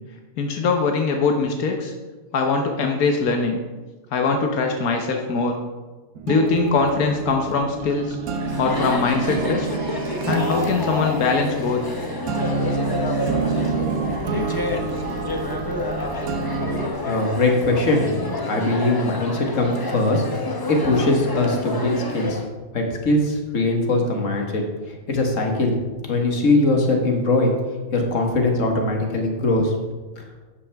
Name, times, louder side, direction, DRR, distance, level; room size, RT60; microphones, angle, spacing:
voice 1, 0.4-1.9 2.3-3.6 4.1-5.6 6.3-8.2 8.6-9.7 10.3-11.9, left 4 dB, 90° left, 3 dB, 1.4 m, -22 dB
sound 1, 6.1-16.9, right 3 dB, 80° right, 1.4 m, -27 dB
Chatter, 8.3-22.5, left 2 dB, 20° left, 0.7 m, -29 dB
voice 2, 16.9-18.1 18.4-22.4 22.7-25.7 26.0-27.5 27.9-29.7 30.2-30.3, left 2 dB, 60° left, 2 dB, 1.9 m, -21 dB
12.5 x 8.8 x 3.5 m, 1.3 s
omnidirectional pair, 1.5 m